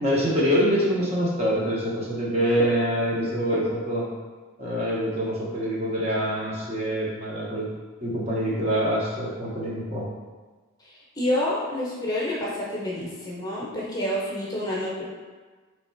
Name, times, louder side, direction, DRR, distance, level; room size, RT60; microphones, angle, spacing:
voice 1, 0.0-4.0 4.6-7.7 8.0-10.1, equal, 30° right, -5 dB, 0.8 m, -25 dB
voice 2, 10.8-15.0, left 1 dB, 15° left, -5 dB, 0.8 m, -28 dB
3.6 x 3.3 x 4.4 m, 1.4 s
head